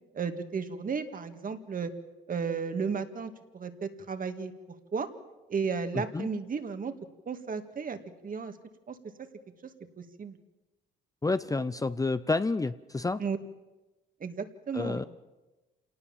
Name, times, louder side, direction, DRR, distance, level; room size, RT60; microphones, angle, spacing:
voice 1, 0.1-1.9 2.3-4.5 4.9-5.1 5.5-6.9 7.3-8.0 8.2-8.5 8.9-9.0 10.2-10.4 13.2-13.4 14.2-15.0, right 5 dB, 45° right, 8 dB, 2.2 m, -33 dB
voice 2, 5.9-6.3 11.2-13.2 14.7-15.0, left 3 dB, 15° left, 13 dB, 0.7 m, -29 dB
27.5 x 18.5 x 7.4 m, 1.1 s
cardioid pair, 90°, 20 cm